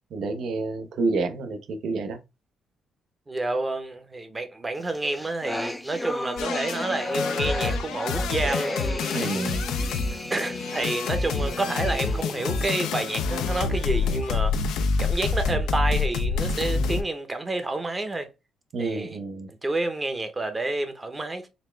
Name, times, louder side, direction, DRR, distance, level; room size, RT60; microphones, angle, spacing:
voice 1, 0.1-2.2 9.1-9.6 18.7-19.5, right 3 dB, 70° right, 0.7 m, -29 dB
voice 2, 3.3-8.8 9.1-9.4 10.3-14.5 15.0-18.3 18.8-19.2 19.5-21.5, right 2 dB, 20° right, 0.8 m, -29 dB
sound 1, 4.9-12.7, left 1 dB, 10° left, 0.5 m, -33 dB
sound 2, 6.4-17.0, left 4 dB, 85° left, 0.4 m, -27 dB
4.0 x 2.2 x 3.3 m
cardioid pair, 90°, 0 cm